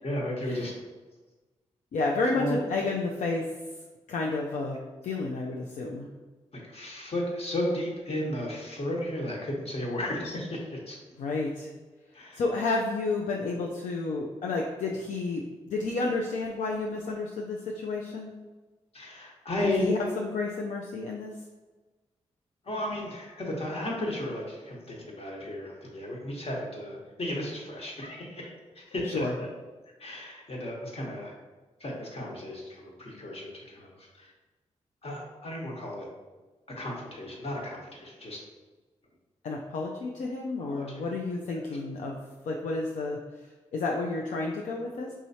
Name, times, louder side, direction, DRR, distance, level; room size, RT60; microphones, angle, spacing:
voice 1, 0.0-0.7 2.3-2.6 6.6-11.0 12.1-12.4 18.9-19.9 22.6-29.5 30.0-31.3 31.8-34.3 35.0-36.1 36.8-38.4 40.6-41.0 41.5-41.8, left 1 dB, 50° left, -2 dB, 1.2 m, -34 dB
voice 2, 1.9-3.4 4.1-4.8 5.0-6.1 11.2-11.7 12.1-18.3 19.8-21.3 29.1-29.3 39.4-43.2 43.7-45.1, left 3 dB, 75° left, 0 dB, 0.4 m, -31 dB
4.6 x 3.0 x 2.7 m, 1.2 s
supercardioid pair, 40°, 13 cm